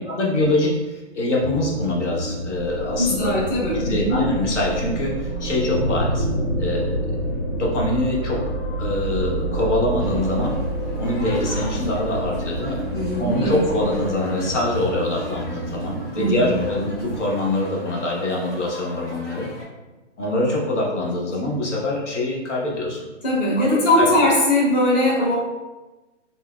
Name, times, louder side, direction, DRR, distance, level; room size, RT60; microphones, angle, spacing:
voice 1, 0.1-3.3 3.7-6.3 6.6-7.1 7.5-8.4 8.8-10.5 11.0-12.8 13.2-19.5 20.2-23.1 23.6-24.1, left 1 dB, 75° left, -3 dB, 1.1 m, -24 dB
sound 1, 1.4-17.2, equal, 45° right, 0.4 m, -32 dB
sound 2, 2.5-14.1, right 1 dB, 55° left, 1.4 m, -29 dB
voice 2, 3.0-4.2 12.9-13.6 16.2-16.5 23.2-25.4, left 1 dB, 35° left, -6 dB, 0.9 m, -20 dB
sound 3, 10.0-19.6, left 1 dB, 15° left, 1.4 m, -41 dB
5.5 x 2.1 x 2.3 m, 1.1 s
hypercardioid pair, 170°, 36 cm